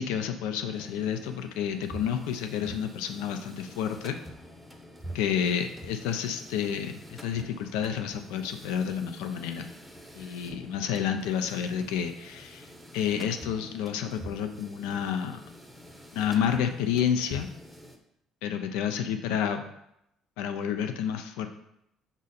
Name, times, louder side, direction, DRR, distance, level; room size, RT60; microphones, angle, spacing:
voice 1, 0.0-4.2 5.1-9.7 10.2-12.7 12.9-15.4 16.1-17.5 18.4-19.6 20.4-21.5, left 8 dB, 85° left, 7 dB, 0.4 m, -30 dB
sound 1, 0.7-18.0, equal, 5° right, 0.7 m, -47 dB
5.3 x 2.4 x 4.1 m, 0.80 s
supercardioid pair, 80°, 0 cm